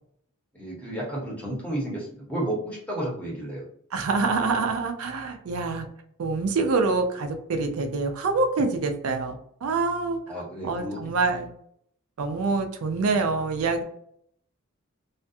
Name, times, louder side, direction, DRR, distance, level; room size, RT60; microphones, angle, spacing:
voice 1, 0.5-3.7 10.3-11.0, right 1 dB, 5° left, -4 dB, 0.8 m, -32 dB
voice 2, 3.9-5.9 6.2-9.4 9.6-10.2 10.6-11.5 12.2-13.8, right 3 dB, 80° right, 5 dB, 0.4 m, -25 dB
2.4 x 2.2 x 2.6 m, 0.67 s
head